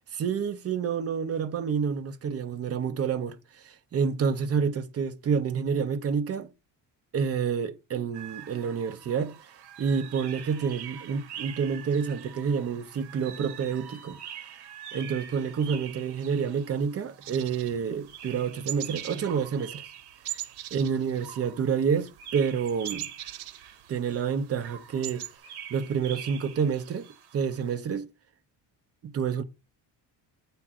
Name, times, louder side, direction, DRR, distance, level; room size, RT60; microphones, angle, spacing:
voice 1, 0.1-3.4 3.6-6.5 7.1-9.4 9.8-14.2 14.9-19.8 20.7-23.1 23.9-25.2 25.7-27.1 27.3-28.1 29.0-29.4, right 6 dB, 30° right, 0.8 m, -28 dB
sound 1, 8.1-27.7, right 9 dB, 60° right, 1.5 m, -45 dB
sound 2, 17.2-18.4 18.7-19.3 19.5-19.8 20.2-21.8 22.0-24.1 24.5-24.6 24.8-25.3, right 15 dB, 80° right, 0.8 m, -39 dB
8.5 x 3.7 x 5.8 m
cardioid pair, 165°, 44 cm